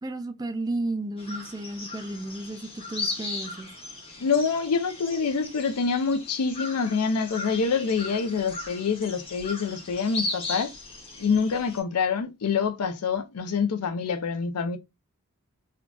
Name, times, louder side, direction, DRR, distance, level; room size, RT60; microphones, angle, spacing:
voice 1, 0.0-3.7, right 2 dB, 15° right, 0.3 m, -33 dB
sound 1, 1.2-11.8, left 3 dB, 25° left, 0.8 m, -37 dB
voice 2, 4.2-10.7 11.2-14.8, left 5 dB, 90° left, 0.5 m, -26 dB
3.7 x 2.3 x 2.3 m
head